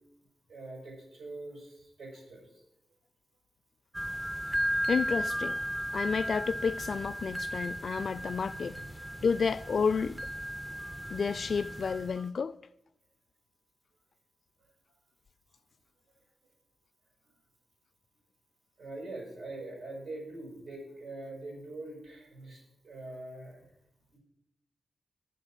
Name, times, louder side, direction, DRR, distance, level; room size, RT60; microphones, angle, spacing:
voice 1, 0.5-2.5 18.8-23.6 24.1-24.2, right 2 dB, 85° right, 6.6 m, -43 dB
sound 1, 3.9-12.3, equal, 10° right, 0.4 m, -35 dB
voice 2, 4.9-5.6 5.9-8.8 9.2-10.2 11.1-12.6, left 5 dB, 55° left, 0.4 m, -30 dB
12.5 x 7.0 x 9.0 m
wide cardioid pair, 115°, 0 cm